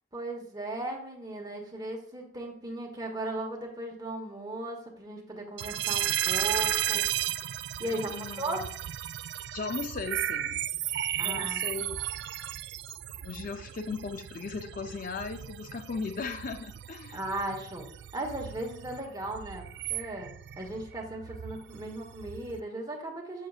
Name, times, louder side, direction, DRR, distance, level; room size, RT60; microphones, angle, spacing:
voice 1, 0.1-7.1 7.8-8.6 11.2-11.6 17.1-17.9 18.1-23.5, right 1 dB, 20° right, 0 dB, 1.1 m, -37 dB
sound 1, 5.6-22.6, right 12 dB, 70° right, 0.3 m, -35 dB
voice 2, 7.8-8.7 9.3-10.6 11.2-12.0 13.2-17.2, left 4 dB, 50° left, 8 dB, 0.4 m, -37 dB
6.4 x 6.4 x 2.4 m, 0.62 s
head